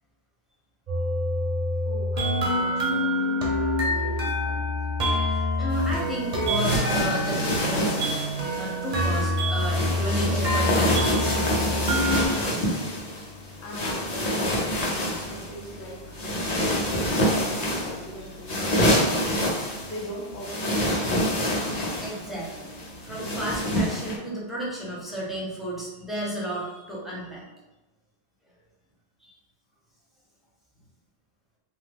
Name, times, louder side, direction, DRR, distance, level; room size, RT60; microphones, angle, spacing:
sound 1, 0.9-12.3, left 1 dB, 45° right, 0.6 m, -26 dB
voice 1, 1.8-4.7 13.6-21.4 30.8-30.9, equal, 85° left, -2 dB, 1.0 m, -41 dB
voice 2, 5.3-8.0 8.6-11.4 12.5-12.8 22.0-22.7 23.0-27.4 29.2-29.3, right 1 dB, ahead, -6 dB, 0.6 m, -33 dB
sound 2, 5.7-24.2, equal, 45° left, 0.7 m, -27 dB
2.9 x 2.3 x 3.3 m, 1.1 s
omnidirectional pair, 1.1 m